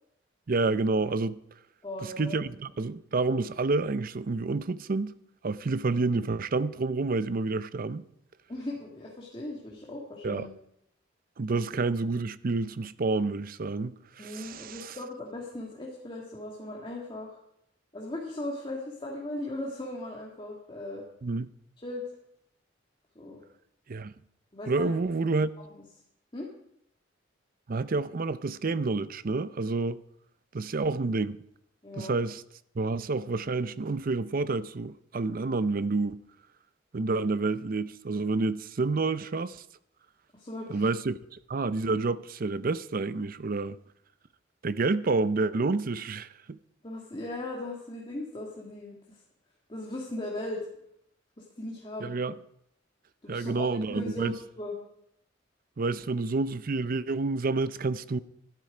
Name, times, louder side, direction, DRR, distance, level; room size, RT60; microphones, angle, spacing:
voice 1, 0.5-1.4 2.0-5.1 5.4-8.0 10.2-10.5 11.4-15.0 21.2-21.5 23.9-24.1 24.7-25.5 27.7-30.0 30.5-31.4 32.0-32.4 32.8-36.2 36.9-39.6 40.7-43.8 44.6-46.6 52.0-52.4 53.3-54.4 55.8-58.2, right 3 dB, 50° right, 0.6 m, -29 dB
voice 2, 1.8-2.4 8.5-10.5 14.2-17.4 17.9-21.0 21.8-22.0 23.2-23.4 24.5-25.0 26.3-26.5 31.8-32.2 40.3-40.9 46.8-49.2 49.7-50.7 51.6-52.2 53.2-54.8, left 1 dB, 25° left, 2.0 m, -38 dB
12.5 x 12.0 x 5.0 m
head